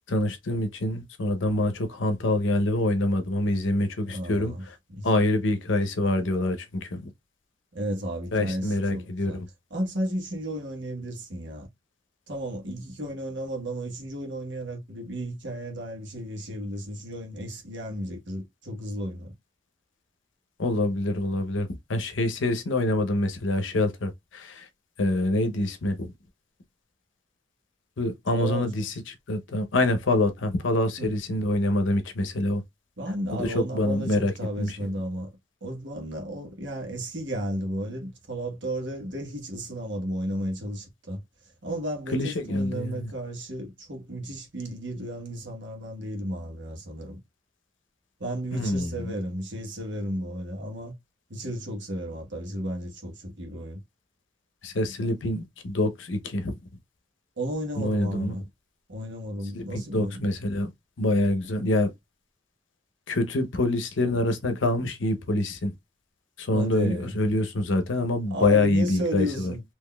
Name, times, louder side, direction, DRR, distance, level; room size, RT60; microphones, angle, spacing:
voice 1, 0.1-4.5 5.0-7.1 8.3-9.5 20.6-24.7 25.0-26.1 28.0-32.6 33.3-34.3 34.6-34.8 42.1-43.1 48.5-49.2 54.6-56.6 57.8-58.3 59.5-60.7 61.0-61.9 63.1-65.7 66.4-69.5, left 1 dB, 70° left, 0.7 m, -26 dB
voice 2, 4.1-4.6 4.9-5.1 7.7-9.4 9.7-11.7 12.3-19.3 28.3-28.7 31.0-31.1 33.0-35.3 35.6-41.2 41.6-47.2 48.2-50.9 51.3-53.8 55.0-55.1 57.4-58.4 58.9-60.2 66.5-67.2 68.3-69.6, equal, 65° right, 1.2 m, -33 dB
3.8 x 2.8 x 2.2 m
head